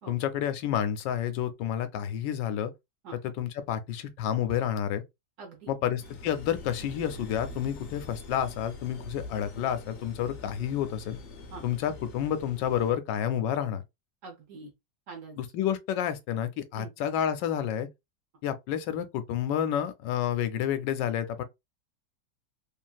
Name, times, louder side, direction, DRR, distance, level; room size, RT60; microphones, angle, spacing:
voice 1, 0.1-2.7 3.2-5.0 5.7-11.2 11.6-13.8 15.4-17.9 18.4-21.4, left 10 dB, 85° left, 1.2 m, -30 dB
voice 2, 5.4-5.7 11.5-11.6 14.2-14.7 15.1-15.4 16.7-16.9, right 4 dB, 55° right, 1.0 m, -44 dB
sound 1, 6.0-12.9, left 2 dB, 60° left, 0.9 m, -44 dB
3.0 x 2.6 x 2.3 m
omnidirectional pair, 1.9 m